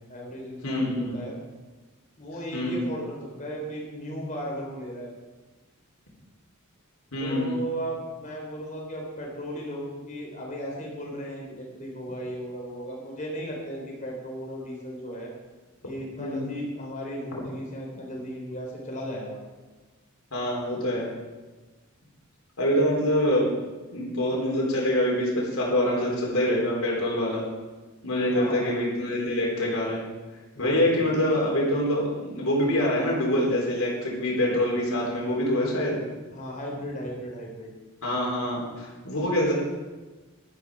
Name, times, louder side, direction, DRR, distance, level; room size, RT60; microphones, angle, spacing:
voice 1, 0.1-1.4 2.2-5.1 7.2-15.3 15.8-19.4 28.3-28.8 30.5-31.0 36.3-37.7, equal, 35° left, -2 dB, 3.8 m, -36 dB
voice 2, 0.6-1.1 2.5-2.9 7.1-7.6 16.2-16.5 17.3-17.4 20.3-21.1 22.6-23.5 23.9-27.4 28.0-30.0 30.6-36.0 38.0-39.5, left 1 dB, 70° left, -3 dB, 3.7 m, -25 dB
12.0 x 11.5 x 4.8 m, 1.3 s
head